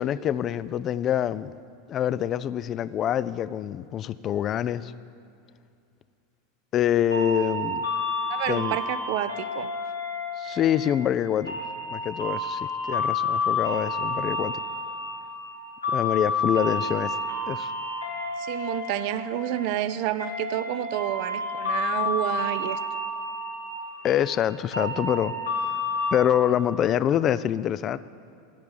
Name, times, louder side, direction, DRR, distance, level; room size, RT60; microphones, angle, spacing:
voice 1, 0.0-1.6 1.9-4.9 6.7-7.8 8.5-8.8 10.4-11.5 11.9-14.6 15.9-17.2 17.5-17.7 24.0-25.3 26.1-28.0, left 10 dB, 35° left, 17 dB, 0.3 m, -25 dB
sound 1, 7.1-26.1, left 2 dB, 85° left, 1.7 m, -30 dB
voice 2, 8.3-9.7 18.4-22.8, right 13 dB, 55° right, 14 dB, 0.4 m, -29 dB
11.5 x 5.9 x 8.7 m, 2.5 s
figure-of-eight pair, 85°, 0 cm